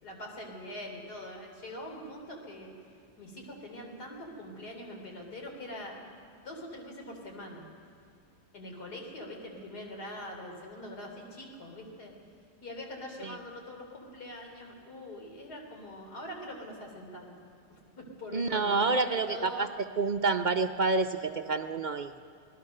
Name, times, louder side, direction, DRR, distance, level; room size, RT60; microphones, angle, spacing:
voice 1, 0.0-2.7 3.2-7.7 8.5-12.1 12.6-17.3 17.7-19.6, left 1 dB, 75° left, 1 dB, 4.1 m, -43 dB
voice 2, 18.3-19.7 20.0-22.2, right 3 dB, 55° right, 7 dB, 0.5 m, -28 dB
26.5 x 19.0 x 6.6 m, 2.4 s
omnidirectional pair, 1.7 m